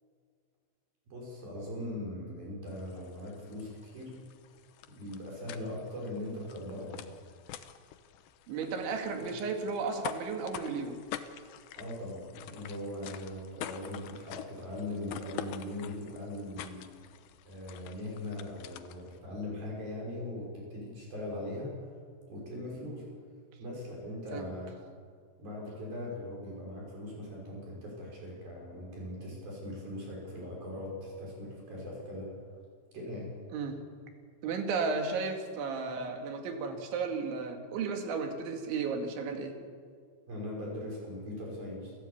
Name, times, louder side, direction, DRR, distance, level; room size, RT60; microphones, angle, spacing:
voice 1, 1.1-4.1 5.0-7.0 11.8-16.8 17.5-21.8 22.3-23.1 23.6-24.7 25.4-32.3 32.9-33.3 40.3-41.9, left 1 dB, 50° right, -2 dB, 7.7 m, -40 dB
sound 1, 2.7-19.2, left 11 dB, 80° left, 3.0 m, -47 dB
voice 2, 8.5-11.0 24.3-24.5 33.5-33.8 34.4-39.6, right 4 dB, 85° right, 5 dB, 4.5 m, -34 dB
28.5 x 15.0 x 8.7 m, 2.1 s
omnidirectional pair, 5.3 m